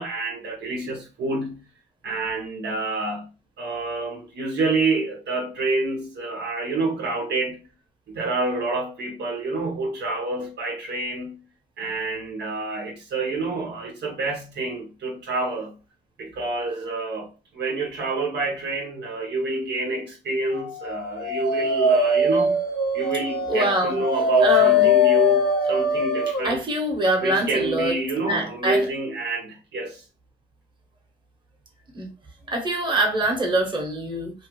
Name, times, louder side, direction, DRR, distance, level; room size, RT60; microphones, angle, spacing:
voice 1, 0.0-1.6 2.0-3.3 3.6-7.7 8.1-11.4 11.8-15.7 16.2-22.6 22.9-26.6 27.2-30.0, right 3 dB, 60° right, 0.9 m, -28 dB
Dog, 20.9-26.5, left 3 dB, 55° left, 1.0 m, -21 dB
voice 2, 23.5-24.0 24.4-24.9 26.4-27.9 28.2-28.9 31.9-32.1 32.5-34.3, right 1 dB, 25° right, 1.1 m, -24 dB
2.7 x 2.4 x 3.0 m
cardioid pair, 90°, 20 cm